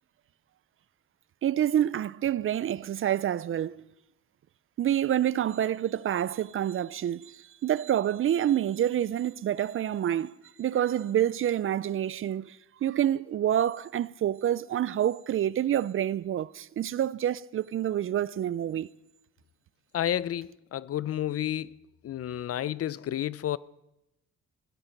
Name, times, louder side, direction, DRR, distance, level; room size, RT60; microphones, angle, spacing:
voice 1, 1.4-3.8 4.8-18.9, right 11 dB, 45° right, 0.4 m, -28 dB
voice 2, 19.9-21.8 22.0-23.6, left 11 dB, 50° left, 0.5 m, -31 dB
17.0 x 11.5 x 5.3 m
cardioid pair, 90°, 30 cm